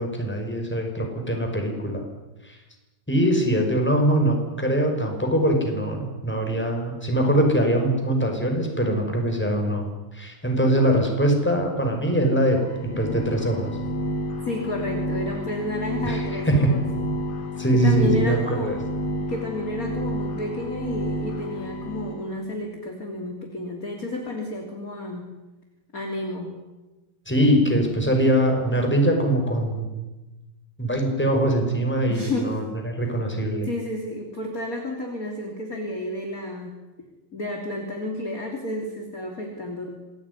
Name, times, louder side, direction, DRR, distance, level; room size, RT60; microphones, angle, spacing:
voice 1, 0.0-2.0 3.1-9.9 10.1-13.7 16.0-16.8 17.6-18.8 27.3-29.9 30.8-33.7, right 1 dB, 5° left, 2 dB, 5.4 m, -22 dB
sound 1, 12.6-22.3, left 1 dB, 75° left, 4.2 m, -30 dB
voice 2, 14.4-16.8 17.7-18.8 19.3-25.3 25.9-26.6 32.1-32.6 33.6-36.8 37.3-39.9, left 1 dB, 25° left, 2 dB, 3.1 m, -31 dB
27.5 x 20.0 x 9.8 m, 1.1 s
omnidirectional pair, 4.5 m